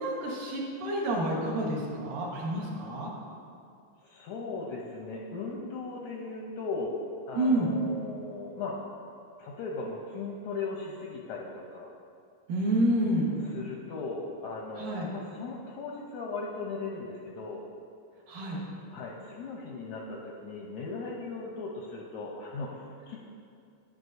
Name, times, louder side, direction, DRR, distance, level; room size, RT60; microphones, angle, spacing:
voice 1, 0.0-3.1 7.4-7.7 12.5-13.3 14.8-15.1 18.3-18.6, right 1 dB, 70° right, -3 dB, 2.9 m, -28 dB
voice 2, 4.0-6.9 7.3-8.8 9.4-11.9 13.4-17.6 18.9-23.2, left 3 dB, 80° left, -2 dB, 1.7 m, -38 dB
11.0 x 9.7 x 2.7 m, 2.4 s
omnidirectional pair, 4.1 m